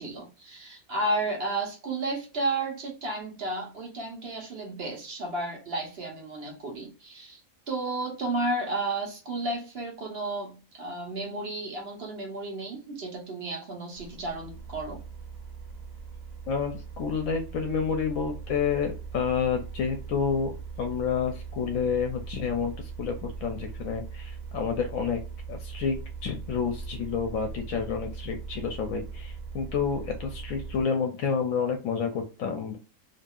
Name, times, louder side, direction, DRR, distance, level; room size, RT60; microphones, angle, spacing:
voice 1, 0.0-7.4 7.7-15.0, right 2 dB, 50° right, 1.1 m, -32 dB
sound 1, 13.9-30.8, right 5 dB, 75° right, 1.2 m, -40 dB
voice 2, 16.5-20.5 20.8-25.2 25.5-26.0 26.2-32.8, left 6 dB, 80° left, 1.0 m, -29 dB
2.8 x 2.6 x 2.3 m
omnidirectional pair, 1.5 m